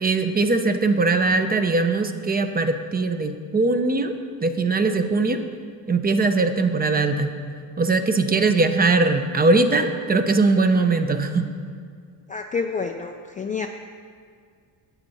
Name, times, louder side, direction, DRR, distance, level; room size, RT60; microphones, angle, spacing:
voice 1, 0.0-4.1 4.4-5.4 5.9-7.4 7.8-11.5, right 3 dB, 20° right, 8 dB, 0.6 m, -20 dB
voice 2, 12.3-13.7, left 5 dB, 20° left, 4 dB, 0.3 m, -28 dB
9.9 x 7.8 x 4.2 m, 2.1 s
cardioid pair, 95°, 42 cm